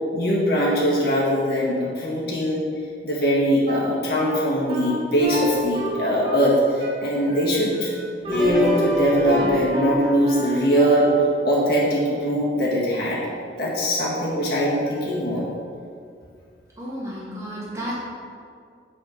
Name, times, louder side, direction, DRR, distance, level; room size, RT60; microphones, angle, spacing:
voice 1, 0.1-2.6 3.0-7.9 8.3-11.1 11.4-13.2 13.6-15.5, equal, 60° left, -5 dB, 1.8 m, -21 dB
Wind instrument woodwind instrument, 3.7-6.5 6.8-11.3, equal, 30° right, 1.2 m, -31 dB
sound 1, 5.2-6.3 8.2-12.6 13.0-13.1 14.0-14.1 14.9-15.0, left 1 dB, ahead, 1.7 m, -30 dB
voice 2, 16.8-18.0, equal, 15° right, -7 dB, 1.9 m, -32 dB
8.7 x 4.2 x 5.4 m, 2.3 s
head